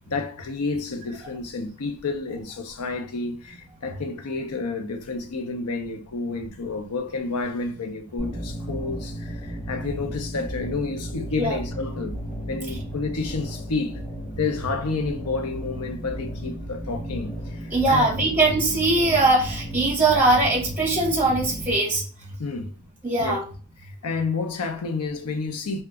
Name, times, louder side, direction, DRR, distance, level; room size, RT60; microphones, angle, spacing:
voice 1, 0.1-12.1 12.5-14.0 14.4-18.3 22.4-22.8 23.2-23.4 23.8-25.8, left 3 dB, 90° left, 0.6 m, -30 dB
sound 1, 8.2-21.7, equal, 15° left, 1.3 m, -35 dB
voice 2, 17.7-22.0 23.0-23.4, right 2 dB, 10° right, 0.8 m, -21 dB
2.9 x 2.2 x 3.4 m
head